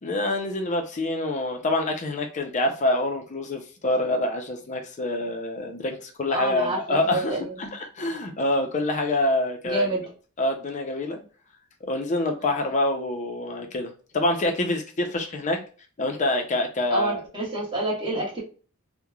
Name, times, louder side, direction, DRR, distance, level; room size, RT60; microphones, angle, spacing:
voice 1, 0.0-9.9 10.4-11.2 11.9-15.6 16.0-17.2, left 1 dB, 35° left, 4 dB, 0.5 m, -26 dB
voice 2, 6.3-7.6 9.6-10.0 16.9-18.4, right 1 dB, 25° right, -4 dB, 1.1 m, -28 dB
3.0 x 2.1 x 2.3 m, 0.38 s
head